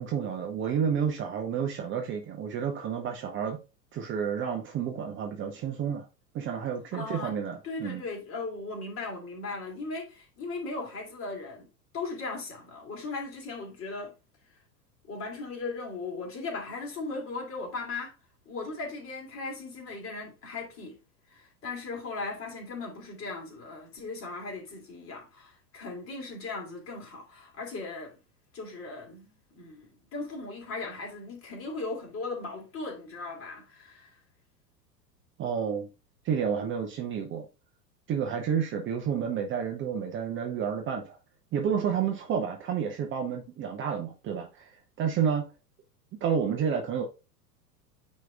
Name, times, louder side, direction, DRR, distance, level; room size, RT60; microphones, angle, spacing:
voice 1, 0.0-3.6 3.9-6.0 6.3-8.0 35.4-35.9 36.2-37.5 38.1-41.2 41.5-44.7 45.0-45.4 46.2-47.0, right 7 dB, 25° right, 0.9 m, -30 dB
voice 2, 6.9-7.4 7.6-11.7 11.9-14.1 15.1-18.1 18.5-21.0 21.3-28.2 28.5-29.3 29.6-34.1, left 3 dB, 25° left, 2.6 m, -38 dB
9.2 x 3.2 x 3.6 m
figure-of-eight pair, 90°, 49 cm